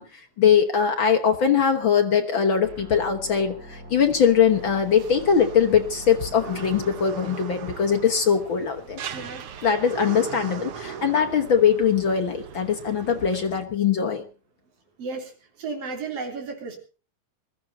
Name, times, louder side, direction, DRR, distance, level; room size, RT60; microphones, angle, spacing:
voice 1, 0.0-9.0 9.6-14.2, left 7 dB, 60° left, 5 dB, 1.3 m, -21 dB
sound 1, 2.6-6.7, equal, 25° right, 7.0 m, -43 dB
sound 2, 4.5-13.7, right 7 dB, 60° right, 1.5 m, -39 dB
voice 2, 9.1-9.4 15.0-15.3 15.6-16.8, right 4 dB, 45° right, 2 dB, 4.2 m, -33 dB
21.0 x 14.0 x 4.1 m, 0.36 s
omnidirectional pair, 3.9 m